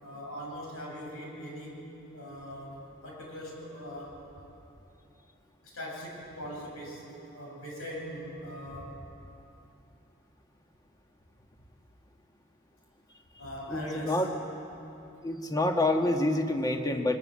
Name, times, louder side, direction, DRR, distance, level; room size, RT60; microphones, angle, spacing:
voice 1, 0.0-1.8 2.1-4.2 5.6-7.0 7.3-9.1 13.4-14.2, equal, 90° left, -2 dB, 6.7 m, -41 dB
voice 2, 13.7-14.3 15.2-17.2, left 1 dB, 20° left, 4 dB, 1.3 m, -27 dB
23.0 x 21.5 x 7.6 m, 2.8 s
head